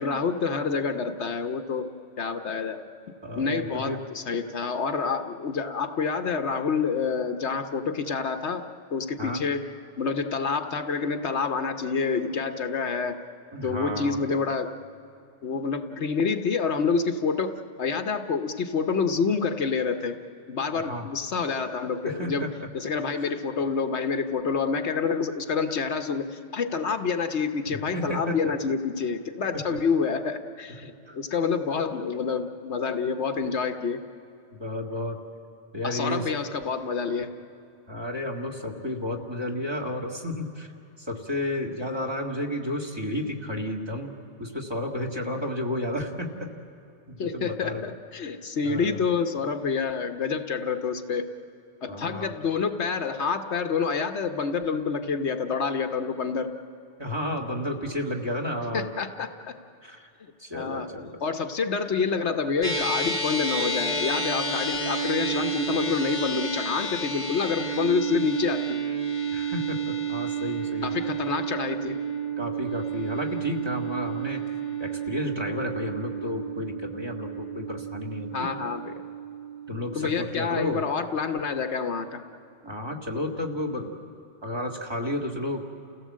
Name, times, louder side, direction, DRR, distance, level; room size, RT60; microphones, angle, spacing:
voice 1, 0.0-2.8 3.4-8.7 8.9-9.7 10.0-13.2 13.6-14.7 15.4-20.2 20.5-34.0 35.8-37.4 47.2-51.3 51.8-56.5 58.7-59.6 60.5-68.8 70.8-72.0 78.3-78.9 79.9-82.2, left 5 dB, 70° left, 7 dB, 1.2 m, -28 dB
voice 2, 3.2-4.0 9.2-9.4 13.5-14.2 20.8-21.1 22.0-22.5 23.2-23.3 27.7-28.3 31.1-31.2 34.6-35.2 35.7-36.3 37.9-40.7 41.0-46.5 47.1-47.8 48.6-49.0 51.9-52.3 57.0-58.9 59.8-60.1 60.4-61.1 69.3-70.9 72.4-74.4 74.8-78.5 79.7-80.8 82.6-83.9 84.4-85.6, left 1 dB, 20° right, 0 dB, 2.0 m, -32 dB
sound 1, 62.6-81.2, right 4 dB, 25° left, 1.2 m, -31 dB
29.5 x 16.5 x 7.5 m, 2.7 s
omnidirectional pair, 1.2 m